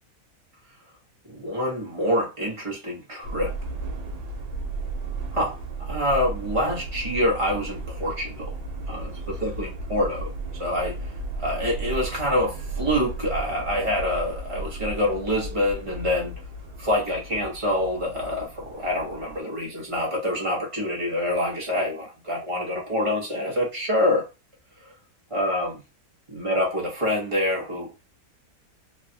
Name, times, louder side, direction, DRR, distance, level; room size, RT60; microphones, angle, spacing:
voice 1, 1.3-3.5 5.3-8.6 8.9-11.0 11.4-16.3 16.8-24.3 25.3-25.8 26.3-28.1, left 1 dB, 25° right, 0.8 m, -26 dB
Subway metro underground, 3.2-19.4, right 2 dB, 85° right, 1.3 m, -34 dB
2.9 x 2.3 x 2.7 m
omnidirectional pair, 1.6 m